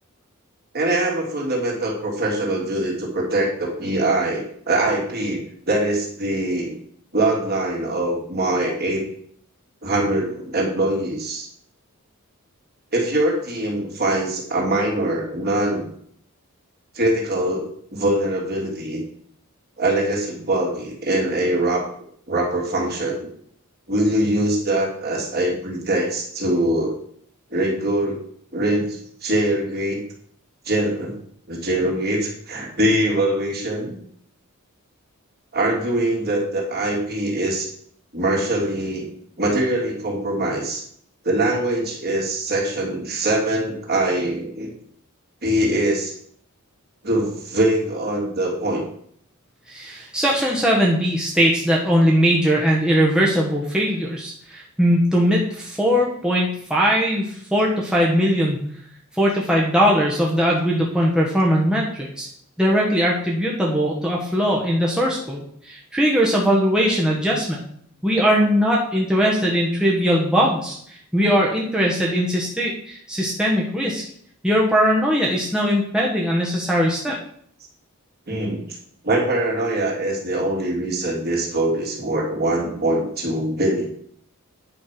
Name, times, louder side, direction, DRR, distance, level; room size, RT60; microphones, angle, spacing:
voice 1, 0.7-6.8 7.1-9.0 9.8-11.5 12.9-15.9 16.9-17.7 17.9-19.0 19.8-21.9 22.3-23.3 23.9-27.0 27.5-28.2 28.5-30.0 30.6-31.2 31.5-34.0 35.5-37.7 38.1-39.1 39.4-40.8 41.2-44.7 45.4-46.1 47.0-48.8 78.3-78.6 79.0-83.9, right 1 dB, 45° right, -2 dB, 2.9 m, -23 dB
voice 2, 49.7-58.6 59.1-62.3 62.6-67.6 68.0-74.0 74.4-77.1, equal, 5° right, -4 dB, 1.3 m, -20 dB
9.6 x 5.5 x 5.9 m, 0.63 s
head